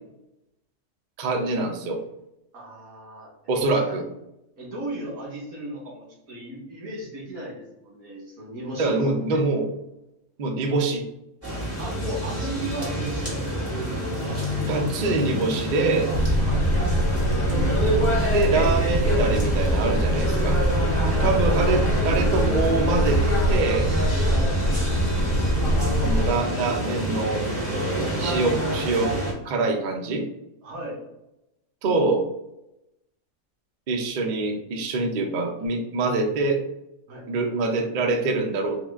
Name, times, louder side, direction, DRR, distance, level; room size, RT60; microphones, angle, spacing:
voice 1, 1.2-2.0 3.5-4.0 8.8-9.7 10.4-11.0 14.5-16.1 18.3-20.6 21.2-23.2 23.5-23.9 26.0-27.4 28.2-29.2 29.4-30.3 31.8-32.3 33.9-36.6 37.3-38.8, right 3 dB, 55° right, 3 dB, 0.5 m, -24 dB
voice 2, 2.5-3.3 3.6-4.0 4.6-9.5 11.8-14.9 16.4-16.7 20.9-21.8 24.2-24.5 30.6-31.0 37.1-37.2, right 1 dB, 90° right, -2 dB, 1.8 m, -36 dB
sound 1, 11.4-29.3, equal, 10° right, 1.2 m, -27 dB
sound 2, 16.1-26.3, equal, 80° left, 1.1 m, -23 dB
3.6 x 2.3 x 3.4 m, 0.87 s
omnidirectional pair, 1.5 m